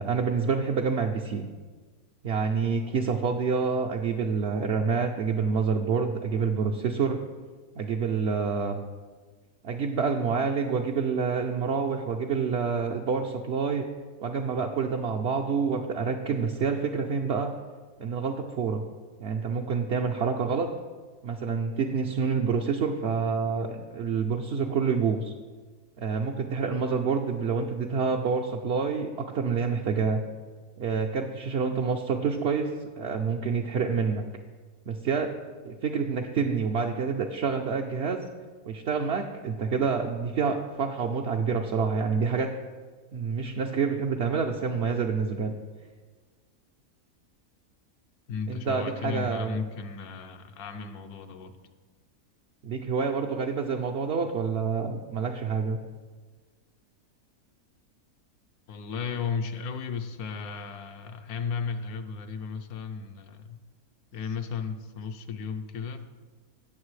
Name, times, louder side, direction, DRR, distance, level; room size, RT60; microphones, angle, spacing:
voice 1, 0.0-1.5 2.2-7.2 7.8-8.8 9.6-13.8 14.2-17.5 18.0-18.8 19.2-20.7 21.2-25.3 26.0-30.2 30.8-32.7 33.0-34.2 34.9-35.3 35.6-38.2 38.7-42.5 43.1-45.5 48.5-49.6 52.6-55.8, right 5 dB, 60° right, 1 dB, 0.7 m, -27 dB
voice 2, 48.3-51.5 58.7-63.6 64.1-66.1, left 5 dB, 75° left, 8 dB, 1.2 m, -34 dB
17.5 x 6.7 x 3.2 m, 1.4 s
omnidirectional pair, 1.6 m